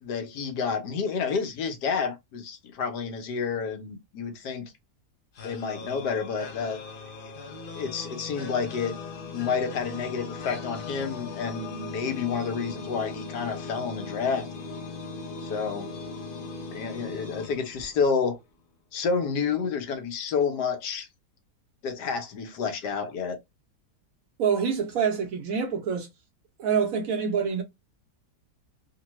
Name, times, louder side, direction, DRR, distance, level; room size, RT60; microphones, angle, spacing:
voice 1, 0.0-4.7 5.4-6.8 7.7-9.0 9.3-14.5 15.4-15.9 16.7-18.4 18.9-21.1 21.8-23.4, left 5 dB, 75° left, 1.3 m, -29 dB
sound 1, 5.4-18.3, left 4 dB, 55° left, 0.6 m, -39 dB
voice 2, 24.4-26.1 26.6-27.6, right 6 dB, 65° right, 1.0 m, -26 dB
3.2 x 2.1 x 3.0 m
omnidirectional pair, 1.8 m